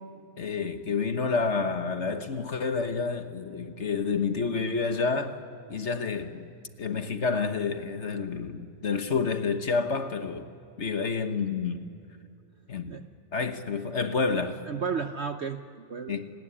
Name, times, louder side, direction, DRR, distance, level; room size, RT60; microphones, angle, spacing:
voice 1, 0.4-5.4 5.7-6.5 6.8-10.5 10.8-11.8 12.7-12.9 13.3-14.6 16.1-16.3, left 4 dB, 45° left, 1.4 m, -29 dB
voice 2, 14.3-16.2, right 6 dB, 50° right, 0.8 m, -34 dB
29.5 x 19.5 x 9.9 m
omnidirectional pair, 1.8 m